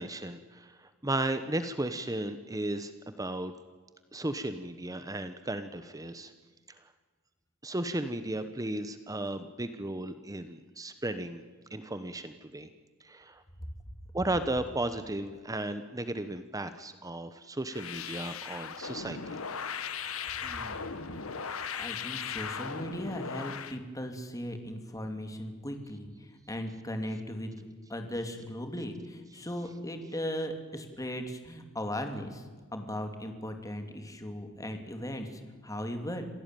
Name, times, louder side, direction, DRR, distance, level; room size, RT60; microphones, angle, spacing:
voice 1, 0.0-3.5 4.1-6.3 7.6-11.4 11.7-12.7 13.0-13.4 14.1-19.2, right 1 dB, 15° right, 10 dB, 1.0 m, -35 dB
sound 1, 17.7-23.8, left 6 dB, 75° left, 1.5 m, -38 dB
voice 2, 20.4-20.8 21.8-27.6 27.9-32.4 32.7-36.3, equal, 15° left, 6 dB, 2.7 m, -37 dB
27.0 x 17.0 x 9.2 m, 1.4 s
head